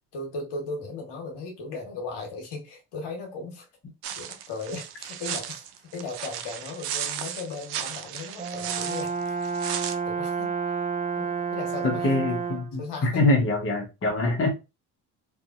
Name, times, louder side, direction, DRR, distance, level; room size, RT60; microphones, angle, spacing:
voice 1, 0.1-3.6 4.2-5.6 5.9-9.3 9.9-10.5 11.2-12.1 12.8-13.3, left 3 dB, 65° left, 1.2 m, -37 dB
sound 1, 4.0-10.0, right 9 dB, 60° right, 0.6 m, -35 dB
Brass instrument, 8.4-12.8, right 5 dB, 20° right, 0.4 m, -30 dB
voice 2, 11.8-14.5, left 2 dB, 30° left, 0.9 m, -24 dB
2.6 x 2.6 x 2.4 m
hypercardioid pair, 60°, 43 cm